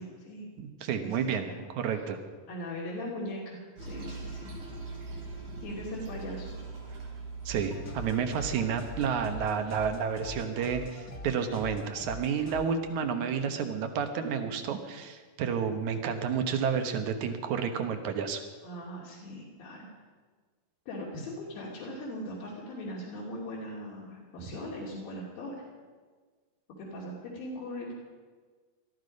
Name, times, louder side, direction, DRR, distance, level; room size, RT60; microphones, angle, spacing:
voice 1, 0.0-0.5 1.0-1.2 1.4-1.6 2.5-4.5 5.6-6.5 18.6-19.8 20.9-25.6 26.8-27.9, left 1 dB, 80° left, -6 dB, 4.5 m, -39 dB
voice 2, 0.6-2.2 7.5-18.4, right 6 dB, 65° right, 7 dB, 2.3 m, -31 dB
Toilet flush, 3.8-9.4, right 3 dB, 85° right, 5.7 m, -41 dB
sound 1, 7.5-12.6, left 1 dB, 40° left, 1.3 m, -43 dB
21.0 x 13.0 x 5.3 m, 1.5 s
omnidirectional pair, 4.1 m